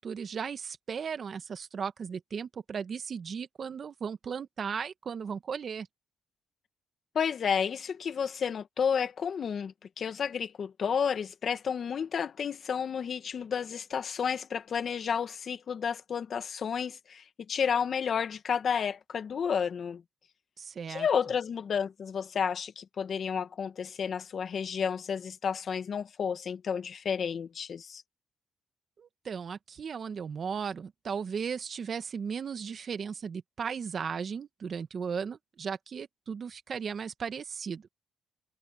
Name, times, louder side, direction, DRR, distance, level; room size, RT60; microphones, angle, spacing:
voice 1, 0.0-5.9 20.6-21.1 29.0-37.9, right 6 dB, 50° right, 1.6 m, -36 dB
voice 2, 7.1-20.0 20.9-28.0, left 7 dB, 50° left, 2.0 m, -31 dB
cardioid pair, 90°, 0 cm